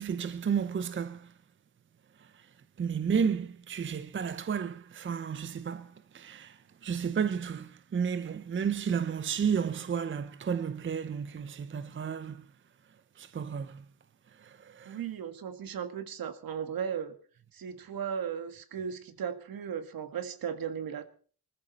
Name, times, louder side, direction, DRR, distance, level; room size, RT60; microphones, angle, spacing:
voice 1, 0.0-1.3 2.1-12.5 13.1-13.9 14.3-15.0, right 7 dB, 30° right, 0.7 m, -32 dB
voice 2, 14.9-17.2 17.5-21.0, right 7 dB, 60° right, 1.9 m, -36 dB
21.0 x 14.0 x 4.2 m
cardioid pair, 95°, 40 cm